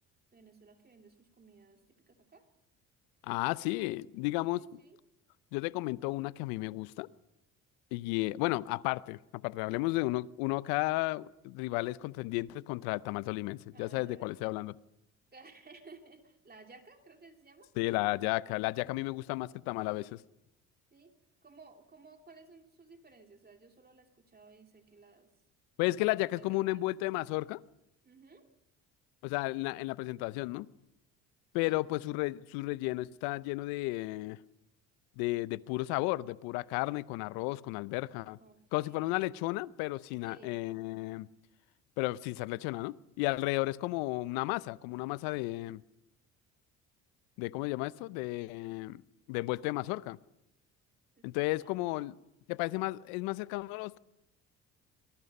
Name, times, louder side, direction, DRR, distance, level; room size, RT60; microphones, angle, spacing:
voice 1, 0.3-2.5 4.4-5.0 13.7-14.4 15.3-17.7 20.9-21.1 21.4-25.3 25.9-26.9 28.0-28.5 31.6-31.8 38.4-39.3 40.2-40.6 47.5-47.8 51.2-51.3 51.6-52.1, right 4 dB, 25° right, 2.9 m, -57 dB
voice 2, 3.2-4.6 5.5-7.1 7.9-14.7 17.8-20.2 25.8-27.6 29.2-30.7 31.5-34.4 35.2-38.4 38.7-41.3 42.0-45.8 47.4-49.0 49.3-50.2 51.2-52.1 52.5-54.0, left 20 dB, 75° left, 0.7 m, -33 dB
23.0 x 21.0 x 5.4 m
hypercardioid pair, 65°, 37 cm